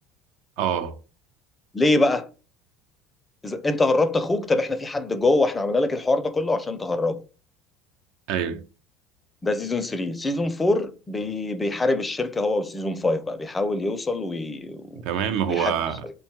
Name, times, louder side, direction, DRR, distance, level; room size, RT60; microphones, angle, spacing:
voice 1, 0.6-0.9 8.3-8.6 15.0-16.1, right 8 dB, 65° right, 0.4 m, -25 dB
voice 2, 1.7-2.3 3.4-7.2 9.4-15.0 15.5-15.7, left 2 dB, 20° left, 0.4 m, -24 dB
2.7 x 2.2 x 2.9 m
hypercardioid pair, 70°, 0 cm